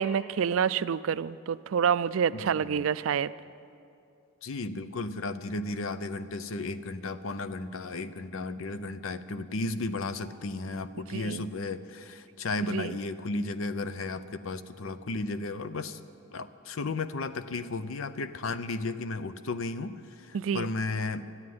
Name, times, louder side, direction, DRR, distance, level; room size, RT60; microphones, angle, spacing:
voice 1, 0.0-3.3 11.1-11.4 12.6-13.0 20.3-20.7, right 7 dB, 70° right, 16 dB, 0.4 m, -28 dB
voice 2, 2.3-2.9 4.4-16.0 16.3-21.3, left 3 dB, 75° left, 12 dB, 0.6 m, -34 dB
13.0 x 9.6 x 9.4 m, 2.5 s
head